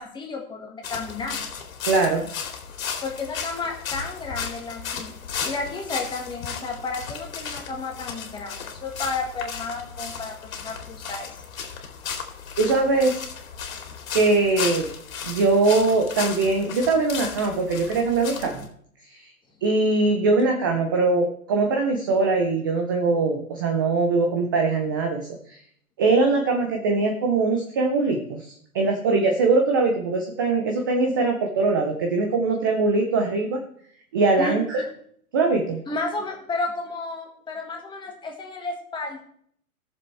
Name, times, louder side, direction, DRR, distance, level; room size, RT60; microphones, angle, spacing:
voice 1, 0.0-1.4 3.0-11.4 34.4-34.9 35.9-39.2, left 3 dB, 10° left, 1 dB, 1.7 m, -32 dB
sound 1, 0.8-18.7, left 6 dB, 65° left, 2.4 m, -35 dB
voice 2, 1.9-2.3 12.6-13.3 14.1-14.9 15.2-18.7 19.1-19.3 19.6-25.6 26.0-28.5 28.7-33.6 34.1-34.8 35.3-35.8, right 3 dB, 15° right, 3 dB, 0.4 m, -22 dB
17.5 x 6.9 x 3.3 m, 0.63 s
hypercardioid pair, 135°, 44 cm